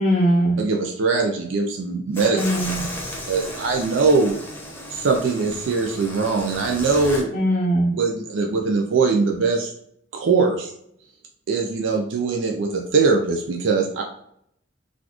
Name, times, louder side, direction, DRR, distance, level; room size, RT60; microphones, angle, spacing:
voice 1, 0.0-0.6 2.4-2.8 7.3-7.9, right 1 dB, 40° left, -4 dB, 0.6 m, -20 dB
voice 2, 0.6-2.4 3.3-4.4 4.9-7.3 7.9-9.7 10.1-10.7 11.5-14.0, right 4 dB, 65° right, 2 dB, 0.4 m, -21 dB
sound 1, 2.1-7.2, left 1 dB, 10° left, 0.8 m, -34 dB
4.0 x 2.4 x 2.9 m, 0.70 s
head